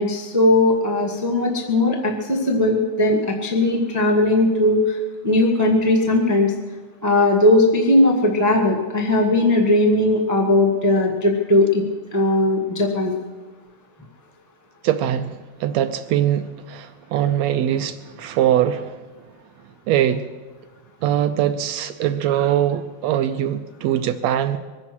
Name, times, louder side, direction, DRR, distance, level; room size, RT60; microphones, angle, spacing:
voice 1, 0.0-5.0 5.2-6.5 7.0-11.8 12.1-13.2, left 2 dB, 10° right, 0 dB, 0.9 m, -18 dB
voice 2, 14.8-19.0 19.9-20.3 21.0-24.6, right 11 dB, 75° right, 10 dB, 1.7 m, -22 dB
23.0 x 9.9 x 6.1 m, 1.3 s
omnidirectional pair, 3.4 m